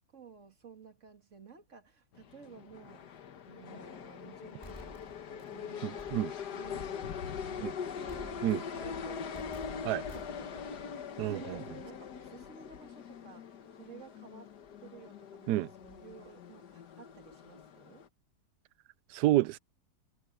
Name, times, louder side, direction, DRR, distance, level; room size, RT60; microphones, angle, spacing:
voice 1, 0.1-3.1 3.5-6.1 6.5-14.5 14.8-18.0, right 6 dB, 50° right, 2.6 m, -54 dB
Moscow metro train arrives, 2.1-18.1, left 7 dB, 85° left, 1.8 m, -42 dB
sound 1, 4.6-5.5 6.0-6.5 8.1-8.8 9.3-10.6, equal, 15° left, 4.3 m, -52 dB
voice 2, 19.1-19.6, right 15 dB, 85° right, 1.2 m, -27 dB
omnidirectional pair, 1.7 m